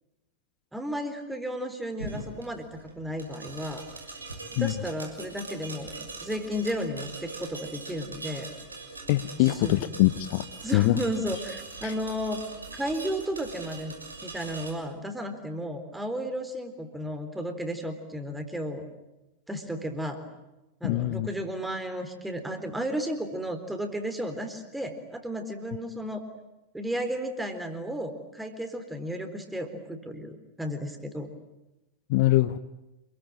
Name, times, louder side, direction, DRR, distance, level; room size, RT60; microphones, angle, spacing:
voice 1, 0.7-2.7 3.0-3.8 4.6-8.5 9.4-9.8 10.6-12.4 12.7-13.9 14.2-18.9 19.5-20.2 20.8-26.2 26.7-31.3, equal, 5° right, 7 dB, 3.9 m, -33 dB
sound 1, 2.0-14.7, right 3 dB, 80° right, 6.1 m, -42 dB
voice 2, 9.1-10.4 10.7-11.0 11.8-11.9 20.8-21.3 32.1-32.6, left 18 dB, 50° left, 15 dB, 0.9 m, -23 dB
28.5 x 22.0 x 9.0 m, 0.99 s
figure-of-eight pair, 90°, 0 cm